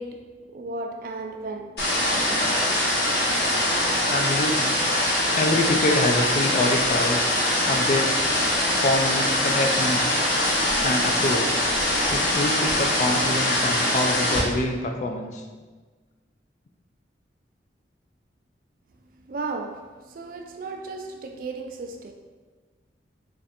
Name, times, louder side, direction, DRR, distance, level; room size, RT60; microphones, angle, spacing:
voice 1, 0.0-2.3 19.3-22.1, right 3 dB, 50° right, 0.3 m, -35 dB
sound 1, 1.8-14.4, left 1 dB, 60° left, 1.1 m, -23 dB
voice 2, 4.1-4.7 5.3-7.2 7.6-8.3 8.8-10.1 10.8-11.6 12.1-15.4, left 1 dB, 40° left, 0.3 m, -26 dB
3.3 x 2.5 x 4.1 m
head